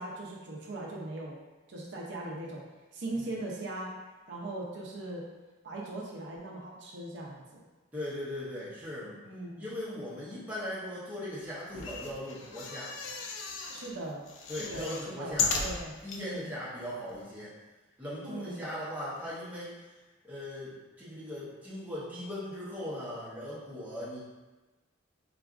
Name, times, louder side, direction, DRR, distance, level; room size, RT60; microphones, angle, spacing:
voice 1, 0.0-1.4 1.7-2.6 2.9-3.9 4.3-5.3 5.6-7.6 9.2-9.6 13.7-14.3 14.6-16.5 18.3-18.7, right 2 dB, 60° right, -3 dB, 0.4 m, -39 dB
voice 2, 7.9-9.2 9.6-12.9 14.5-15.5 16.0-17.5 18.0-19.7 20.2-24.2, left 1 dB, 10° right, -9 dB, 0.7 m, -39 dB
sound 1, 11.7-13.9 14.3-16.2 16.8-16.9 17.1-17.2, left 4 dB, 75° left, 0.4 m, -35 dB
3.8 x 2.3 x 2.4 m, 1.2 s
head